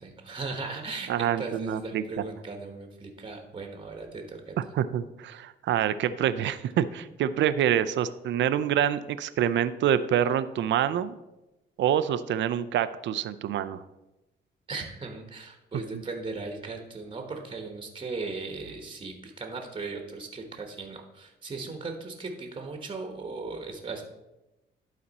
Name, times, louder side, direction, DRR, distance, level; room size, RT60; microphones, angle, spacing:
voice 1, 0.0-4.6 14.7-24.0, right 3 dB, 25° right, 4 dB, 1.2 m, -37 dB
voice 2, 1.1-2.0 4.8-11.2 11.8-13.8, right 10 dB, 65° right, 13 dB, 0.5 m, -26 dB
11.5 x 4.2 x 4.1 m, 0.98 s
cardioid pair, 90°, 20 cm